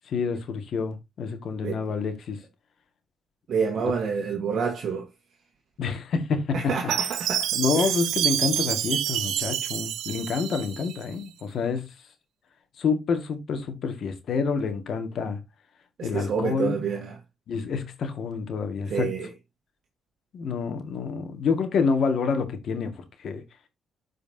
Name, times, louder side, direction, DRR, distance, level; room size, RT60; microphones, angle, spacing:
voice 1, 0.1-2.4 5.8-6.6 7.5-11.9 12.8-15.4 16.0-16.8 17.5-19.1 20.3-22.9 23.2-23.4, left 5 dB, 60° left, 2.0 m, -28 dB
voice 2, 3.5-5.1 6.5-7.9 16.0-17.2 18.9-19.3, right 6 dB, 60° right, 1.6 m, -28 dB
Chime, 6.9-11.0, right 11 dB, 85° right, 0.8 m, -28 dB
12.5 x 5.0 x 2.8 m
cardioid pair, 90°, 0 cm